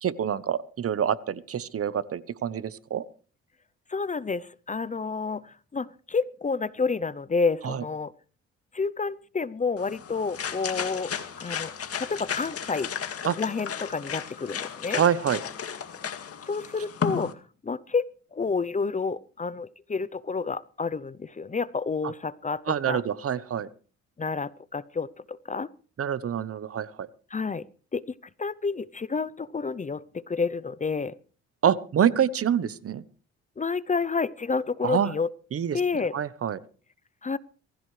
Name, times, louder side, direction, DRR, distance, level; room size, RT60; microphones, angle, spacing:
voice 1, 0.0-3.0 7.6-7.8 13.2-13.4 14.9-15.4 22.7-23.7 26.0-27.1 31.6-33.0 34.8-35.1 35.5-36.6, right 8 dB, 50° right, 17 dB, 1.0 m, -26 dB
voice 2, 3.9-8.1 8.7-11.1 11.4-12.9 13.4-15.0 16.4-23.0 24.2-25.7 27.3-27.7 27.9-28.1 28.4-31.2 33.6-35.3 35.7-36.1 37.2-37.4, left 4 dB, 25° left, 18 dB, 0.7 m, -29 dB
sound 1, 9.8-17.3, left 7 dB, 50° left, 2.0 m, -34 dB
23.5 x 15.5 x 3.3 m, 0.40 s
cardioid pair, 90°, 30 cm